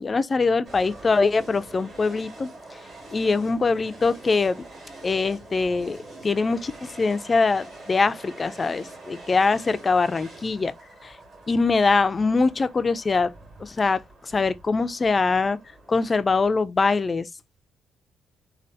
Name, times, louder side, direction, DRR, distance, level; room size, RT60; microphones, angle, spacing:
voice 1, 0.0-2.5 3.1-4.6 5.0-10.7 11.0-11.2 11.5-13.3 13.6-15.6 15.9-17.3, left 4 dB, 30° left, 0.3 m, -23 dB
sound 1, 0.6-16.5, right 2 dB, 40° right, 1.8 m, -45 dB
3.3 x 2.3 x 2.6 m
cardioid pair, 90°, 0 cm